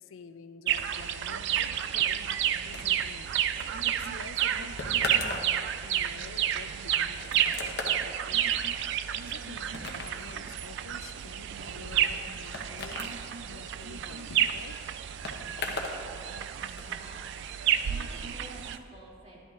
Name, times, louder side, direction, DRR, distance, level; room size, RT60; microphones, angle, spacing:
voice 1, 0.0-2.3 2.6-8.7 9.2-13.2 13.4-14.8 17.8-18.0, left 5 dB, 85° left, 10 dB, 0.4 m, -49 dB
sound 1, 0.7-18.8, right 10 dB, 60° right, 0.3 m, -31 dB
sound 2, 2.7-16.0 16.3-16.9, left 3 dB, 60° left, 1.0 m, -40 dB
voice 2, 16.7-17.3 17.8-19.4, right 1 dB, 30° right, -6 dB, 2.7 m, -50 dB
12.5 x 11.5 x 2.4 m, 2.3 s
head